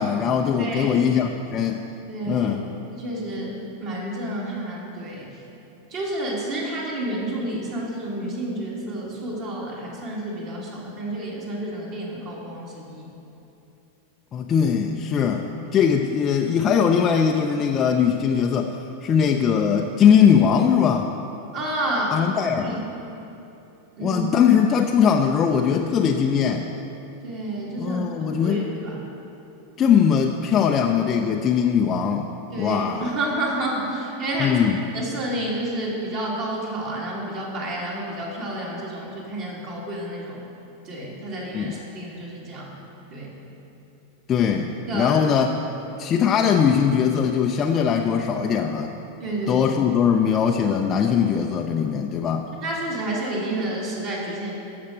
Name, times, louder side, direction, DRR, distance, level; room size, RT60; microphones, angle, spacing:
voice 1, 0.0-1.8 2.3-2.6 14.3-21.1 22.1-22.8 24.0-26.7 27.8-28.6 29.8-32.3 32.6-33.1 34.4-34.8 41.5-41.8 44.3-45.5 46.0-48.9 49.5-52.5, left 7 dB, 25° left, 2 dB, 0.6 m, -20 dB
voice 2, 0.6-1.0 2.1-2.5 2.9-5.3 5.9-13.1 21.5-22.2 22.6-22.8 24.0-24.2 27.2-28.0 28.3-29.0 32.5-34.6 34.9-40.4 40.8-42.7 43.1-43.3 44.9-45.2 49.2-49.7 52.6-54.5, right 1 dB, 40° right, -4 dB, 2.9 m, -30 dB
13.0 x 6.0 x 6.7 m, 2.9 s
figure-of-eight pair, 90°, 0 cm